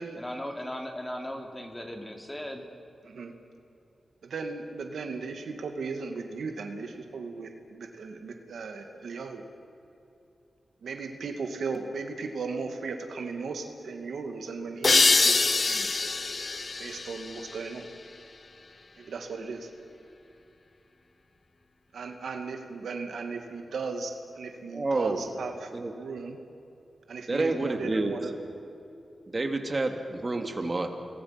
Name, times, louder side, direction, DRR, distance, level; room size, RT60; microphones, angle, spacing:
voice 1, 0.1-2.7, equal, 15° left, 3 dB, 3.3 m, -37 dB
voice 2, 4.2-9.4 10.8-16.0 16.8-17.9 19.0-19.7 21.9-26.4 27.1-28.3, right 4 dB, 85° right, 4 dB, 2.3 m, -36 dB
sound 1, 14.8-18.2, left 3 dB, 45° left, 0.8 m, -25 dB
voice 3, 24.7-25.3 25.7-25.9 27.3-28.2 29.3-30.9, right 2 dB, 35° right, 4 dB, 2.8 m, -29 dB
29.0 x 21.0 x 6.0 m, 2.8 s
cardioid pair, 70°, 0 cm